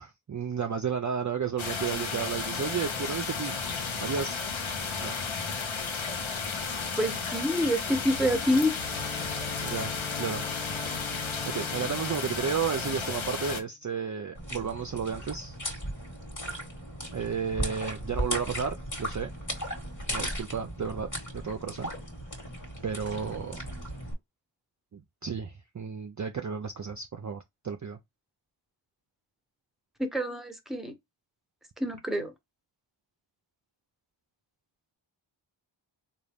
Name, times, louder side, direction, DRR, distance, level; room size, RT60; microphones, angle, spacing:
voice 1, 0.0-3.6 4.0-4.4 5.0-5.1 9.6-9.9 10.2-10.4 11.5-15.6 17.1-19.3 20.1-21.1 21.3-21.9 22.8-23.6 24.9-28.0, right 6 dB, 40° right, 0.4 m, -32 dB
sound 1, 1.6-13.6, left 5 dB, 75° left, 0.8 m, -33 dB
voice 2, 7.0-8.7 30.0-30.9 31.8-32.3, equal, ahead, 0.9 m, -27 dB
Bowed string instrument, 8.1-13.6, left 6 dB, 20° left, 0.4 m, -43 dB
sound 2, 14.3-24.1, equal, 40° left, 1.4 m, -36 dB
3.8 x 2.3 x 3.4 m
wide cardioid pair, 45°, 48 cm